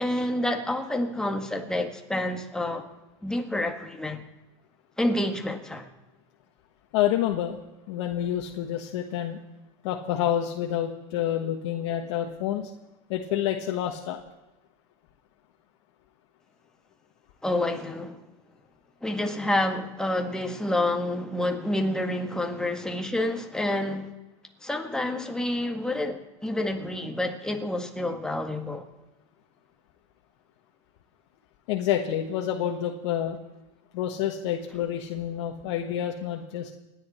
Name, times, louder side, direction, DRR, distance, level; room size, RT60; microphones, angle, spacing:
voice 1, 0.0-2.9 3.2-4.2 5.0-5.9 17.4-18.2 19.0-24.1 24.6-28.9, left 1 dB, 5° left, 1.9 m, -28 dB
voice 2, 6.9-7.6 7.9-9.4 9.8-12.7 13.1-14.2 31.7-33.4 33.9-36.7, left 11 dB, 70° left, 1.4 m, -28 dB
28.0 x 10.5 x 4.4 m
supercardioid pair, 125°, 16 cm